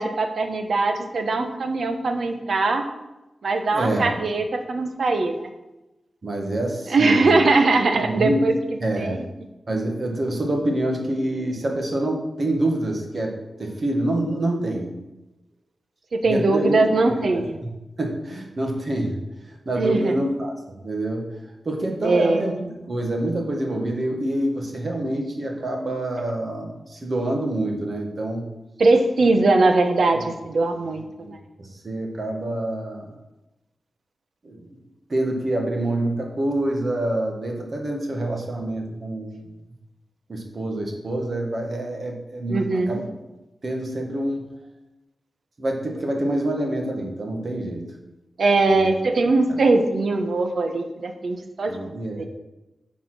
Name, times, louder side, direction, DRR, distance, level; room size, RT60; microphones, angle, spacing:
voice 1, 0.0-2.8 3.4-5.4 6.9-8.5 9.0-9.2 16.1-17.5 19.8-20.1 22.0-22.4 28.8-31.0 42.5-43.0 48.4-51.7 52.2-52.3, right 3 dB, 65° right, 6 dB, 0.9 m, -21 dB
voice 2, 3.7-4.1 6.2-7.4 7.9-8.5 8.8-9.3 9.7-14.9 16.2-16.8 17.0-17.7 18.0-19.2 19.4-21.3 21.6-22.6 22.9-28.5 30.1-30.3 31.2-33.1 34.4-34.8 35.1-39.5 40.3-43.0 43.6-44.4 45.6-47.8 48.7-48.9 49.5-49.6 51.7-52.3, right 1 dB, 45° right, 1 dB, 1.5 m, -26 dB
9.2 x 4.3 x 6.1 m, 1.0 s
wide cardioid pair, 140°, 0 cm